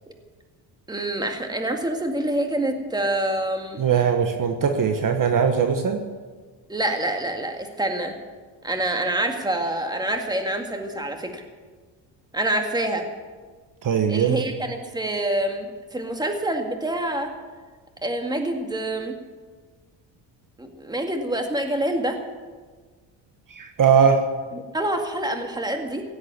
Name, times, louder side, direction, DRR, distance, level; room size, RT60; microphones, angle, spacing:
voice 1, 0.9-3.8 6.7-8.1 8.6-11.4 12.3-13.0 14.1-15.7 15.9-17.3 18.0-19.2 20.6-22.2 24.5-26.0, right 1 dB, 10° right, 4 dB, 2.1 m, -26 dB
voice 2, 3.8-6.0 13.8-14.4 23.5-24.2, right 7 dB, 45° right, 5 dB, 1.4 m, -20 dB
17.0 x 8.0 x 9.8 m, 1.4 s
cardioid pair, 110°, 46 cm